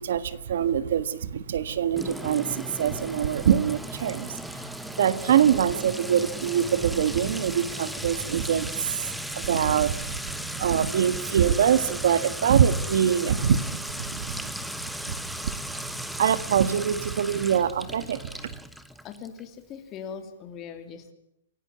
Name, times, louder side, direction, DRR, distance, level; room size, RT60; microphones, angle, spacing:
voice 1, 0.0-4.7 5.0-14.5 15.1-15.2 15.4-18.5, right 8 dB, 65° right, 15 dB, 1.6 m, -24 dB
Sink (filling or washing) / Trickle dribble / Fill (with liquid), 2.0-19.4, equal, ahead, 1.1 m, -36 dB
voice 2, 19.0-21.1, left 7 dB, 20° left, 7 dB, 3.0 m, -40 dB
27.5 x 16.5 x 9.7 m, 0.79 s
hypercardioid pair, 170°, 0 cm